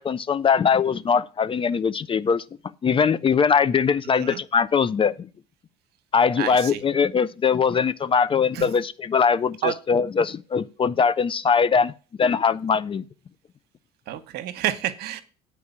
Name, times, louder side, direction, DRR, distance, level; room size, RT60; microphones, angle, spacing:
voice 1, 0.0-2.4 2.8-5.3 6.1-11.9 12.2-13.0, left 6 dB, 30° left, 0.5 m, -21 dB
voice 2, 6.4-6.8 8.5-8.7 9.6-9.7 14.1-15.2, right 12 dB, 60° right, 1.0 m, -29 dB
8.5 x 4.6 x 7.0 m
hypercardioid pair, 70°, 19 cm